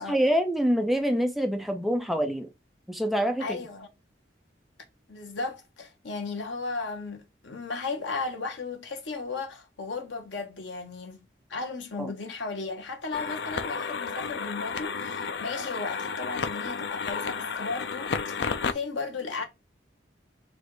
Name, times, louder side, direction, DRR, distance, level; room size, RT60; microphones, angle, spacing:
voice 1, 0.0-2.5 2.9-3.6 12.0-12.1, equal, ahead, 0.5 m, -26 dB
voice 2, 3.4-3.9 5.1-11.2 11.5-19.4, left 3 dB, 80° left, 1.1 m, -35 dB
sound 1, 13.1-18.7, left 5 dB, 65° left, 0.4 m, -32 dB
4.2 x 2.5 x 4.6 m
head